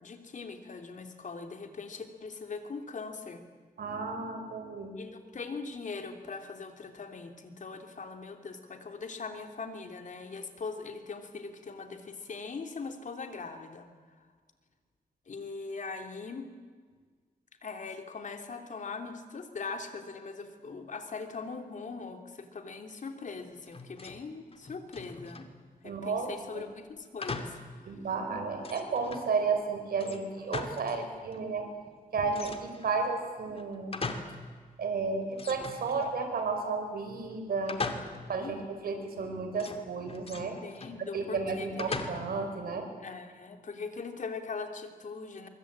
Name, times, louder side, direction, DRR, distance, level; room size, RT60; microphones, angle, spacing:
voice 1, 0.0-3.4 5.0-13.9 15.3-16.5 17.6-25.4 25.8-27.6 27.8-27.9 37.7-38.1 38.4-38.5 40.6-42.0 43.0-45.5, left 4 dB, 55° left, 5 dB, 3.0 m, -41 dB
voice 2, 3.8-4.9 25.8-26.3 26.5-26.6 27.8-31.7 32.1-34.0 34.8-37.8 38.3-40.6 41.1-42.9, right 4 dB, 90° right, 5 dB, 4.7 m, -32 dB
sound 1, 23.7-24.2 24.5-25.6 27.2-27.7 28.1-28.2 28.6-29.3 30.0-31.1 31.3-31.4 32.3-33.0 33.5-34.5 34.8-34.9 35.3-36.4 37.7-38.4 39.6-41.0 41.8-42.5, left 3 dB, 40° left, 2.6 m, -39 dB
23.5 x 23.5 x 8.7 m, 1.5 s
wide cardioid pair, 100°, 15 cm